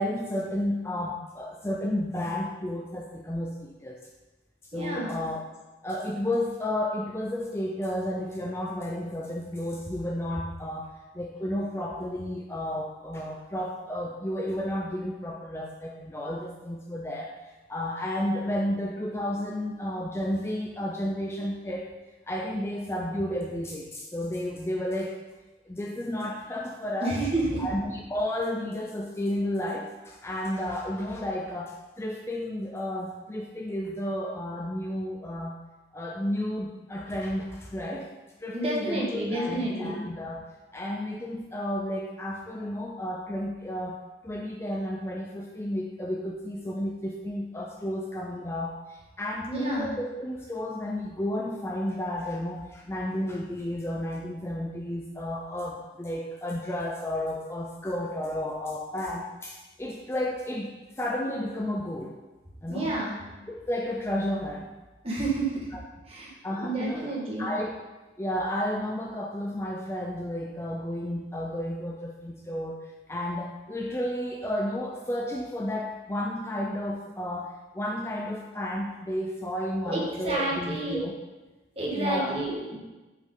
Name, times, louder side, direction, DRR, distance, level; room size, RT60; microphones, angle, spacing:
voice 1, 0.0-4.0 4.7-5.4 5.8-10.9 11.1-21.9 22.3-25.2 25.7-27.2 27.6-35.5 35.9-38.1 38.4-40.4 40.7-60.7 61.0-62.1 62.6-63.0 63.5-64.7 65.7-65.8 66.4-67.7 68.2-81.1 81.9-82.4, left 1 dB, 15° left, 0 dB, 0.4 m, -32 dB
voice 2, 4.7-5.1 27.0-27.6 38.5-40.0 49.5-49.9 62.7-63.2 65.0-65.5 66.1-66.3 66.6-67.5 79.8-81.0 81.7-82.8, right 2 dB, 30° right, -4 dB, 1.7 m, -29 dB
8.1 x 5.2 x 3.9 m, 1.2 s
head